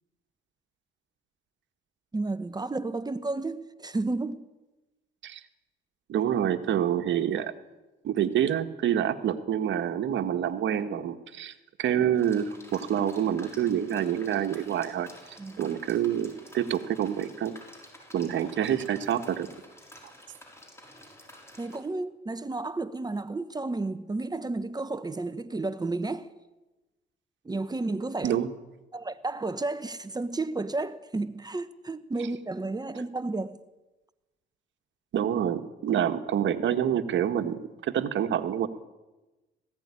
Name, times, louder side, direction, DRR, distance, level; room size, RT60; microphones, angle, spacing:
voice 1, 2.1-4.5 15.4-15.7 21.6-26.3 27.4-28.4 28.9-33.6, right 2 dB, 20° right, 1.1 m, -32 dB
voice 2, 6.1-7.5 8.0-11.5 11.8-15.1 15.6-17.5 18.1-19.5 28.2-28.5 35.1-38.7, right 9 dB, 70° right, 1.6 m, -27 dB
sound 1, 12.1-21.8, left 1 dB, 15° left, 6.0 m, -50 dB
19.0 x 16.5 x 9.9 m
cardioid pair, 90°, 20 cm